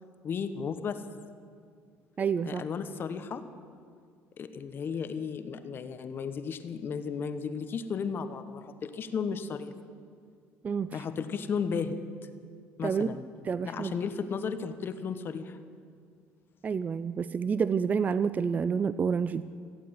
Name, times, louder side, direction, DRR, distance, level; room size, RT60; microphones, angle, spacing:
voice 1, 0.2-1.0 2.4-3.4 4.4-9.7 10.9-12.0 12.8-13.2 13.6-15.6, left 6 dB, 45° left, 10 dB, 1.1 m, -34 dB
voice 2, 2.2-2.6 10.6-10.9 12.8-13.1 13.5-13.9 16.6-19.4, right 6 dB, 30° right, 15 dB, 0.4 m, -28 dB
16.0 x 8.5 x 9.3 m, 2.2 s
supercardioid pair, 95°, 5 cm